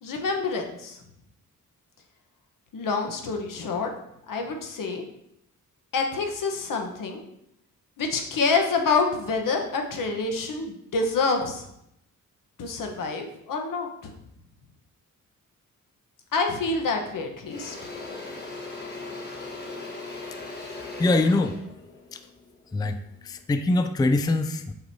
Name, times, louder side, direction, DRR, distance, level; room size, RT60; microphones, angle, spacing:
voice 1, 0.0-1.0 2.7-3.9 4.3-5.0 5.9-7.2 8.0-11.7 12.6-14.1 16.3-17.7, left 4 dB, 85° left, 3 dB, 1.1 m, -27 dB
Engine / Drill, 16.6-16.8 17.1-23.3, left 3 dB, 30° left, 1.4 m, -39 dB
voice 2, 20.7-21.6 22.1-22.2 22.7-24.7, left 2 dB, 15° left, 8 dB, 0.3 m, -24 dB
7.8 x 6.2 x 2.8 m, 0.78 s
wide cardioid pair, 140°, 32 cm